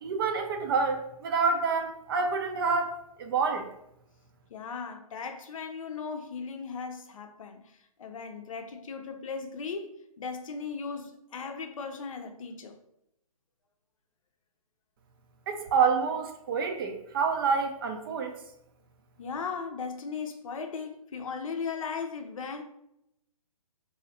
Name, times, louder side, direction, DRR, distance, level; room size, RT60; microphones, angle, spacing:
voice 1, 0.0-3.7 15.5-18.4, right 5 dB, 40° right, 5 dB, 0.4 m, -28 dB
voice 2, 4.5-12.8 19.2-22.6, left 5 dB, 60° left, 5 dB, 0.6 m, -37 dB
3.0 x 2.7 x 2.8 m, 0.82 s
figure-of-eight pair, 130°, 19 cm